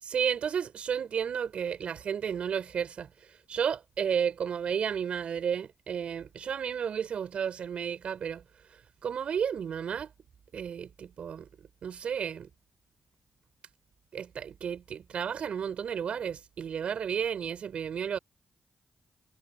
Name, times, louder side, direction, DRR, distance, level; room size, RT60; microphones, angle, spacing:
voice 1, 0.0-3.1 3.5-8.4 9.0-10.1 10.5-11.5 11.8-12.5 14.1-18.2, right 7 dB, 70° right, 6.6 m, -32 dB
supercardioid pair, 50°, 2 cm